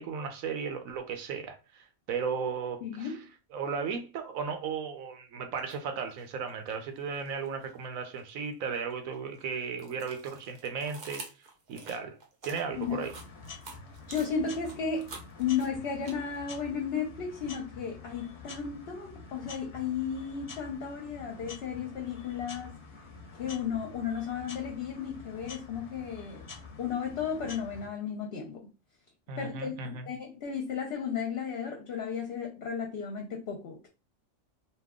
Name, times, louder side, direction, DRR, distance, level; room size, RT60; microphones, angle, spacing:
voice 1, 0.0-3.2 3.5-11.3 11.7-12.2 12.4-13.1 29.3-30.1, right 6 dB, 85° right, 1.1 m, -35 dB
voice 2, 2.8-3.2 12.7-13.0 14.1-15.1 15.4-22.8 23.3-26.4 26.8-28.6 29.4-33.9, left 6 dB, 60° left, 0.8 m, -34 dB
sound 1, 5.6-5.8 6.2-7.7 8.1-16.6, right 3 dB, 45° right, 0.6 m, -48 dB
sound 2, 12.7-27.9, left 4 dB, 30° left, 0.7 m, -47 dB
2.9 x 2.3 x 3.5 m
omnidirectional pair, 1.4 m